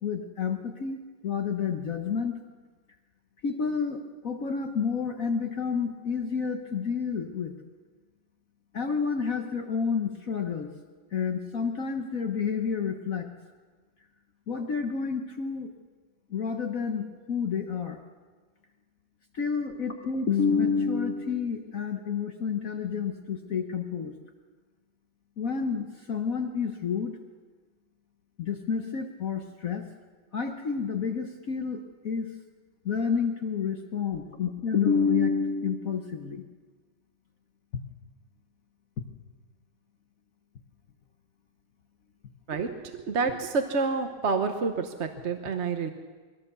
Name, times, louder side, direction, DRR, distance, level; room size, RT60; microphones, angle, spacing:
voice 1, 0.0-2.4 3.4-7.6 8.7-10.7 11.1-13.3 14.5-15.7 16.3-18.0 19.3-24.1 25.4-27.1 28.4-29.9 30.3-32.3 32.8-36.4, left 6 dB, 50° left, 4 dB, 1.3 m, -29 dB
voice 2, 42.5-45.9, right 4 dB, 45° right, 6 dB, 1.1 m, -28 dB
23.0 x 17.0 x 6.9 m, 1.4 s
omnidirectional pair, 2.0 m